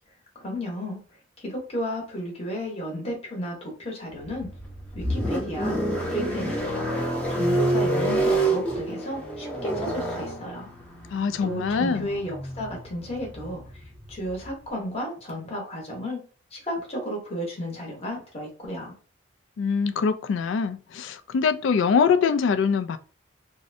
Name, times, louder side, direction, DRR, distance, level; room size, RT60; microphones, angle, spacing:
voice 1, 0.4-1.0 1.4-4.5 4.9-6.9 7.3-10.7 11.4-16.2 16.5-18.9, equal, 30° left, -1 dB, 0.9 m, -33 dB
sound 1, 4.2-14.5, right 1 dB, 5° left, 0.5 m, -28 dB
voice 2, 11.1-12.1 19.6-23.0, left 6 dB, 75° left, 10 dB, 0.3 m, -23 dB
2.6 x 2.1 x 2.5 m, 0.39 s
head